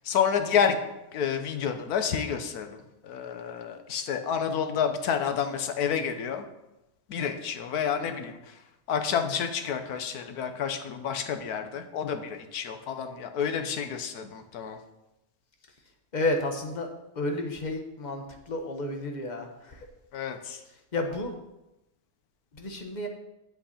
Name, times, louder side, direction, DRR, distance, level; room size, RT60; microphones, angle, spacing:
voice 1, 0.0-0.8 1.1-2.8 3.0-6.5 7.1-8.5 8.9-14.8 20.1-20.6, left 7 dB, 85° left, 8 dB, 1.4 m, -29 dB
voice 2, 16.1-16.9 17.1-19.9 20.9-21.3 22.5-23.1, left 2 dB, 35° left, 4 dB, 1.1 m, -31 dB
8.8 x 7.8 x 4.2 m, 0.94 s
omnidirectional pair, 1.6 m